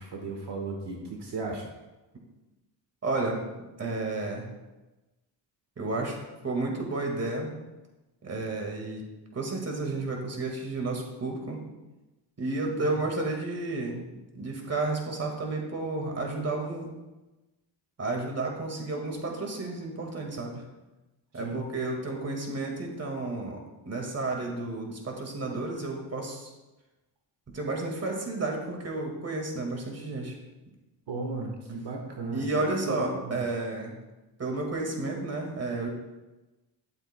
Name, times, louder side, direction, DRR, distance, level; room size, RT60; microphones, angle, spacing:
voice 1, 0.0-1.6 12.8-12.9 21.3-21.6 31.1-33.4, right 3 dB, 60° right, 0 dB, 1.4 m, -35 dB
voice 2, 3.0-3.4 3.8-4.5 5.8-7.5 8.2-9.0 9.3-11.6 12.4-14.0 14.4-16.9 18.0-20.7 21.3-23.6 23.9-26.5 27.5-30.4 32.3-33.9 34.4-35.9, right 2 dB, 35° right, 1 dB, 1.9 m, -32 dB
12.0 x 7.8 x 2.2 m, 1.1 s
cardioid pair, 105°, 46 cm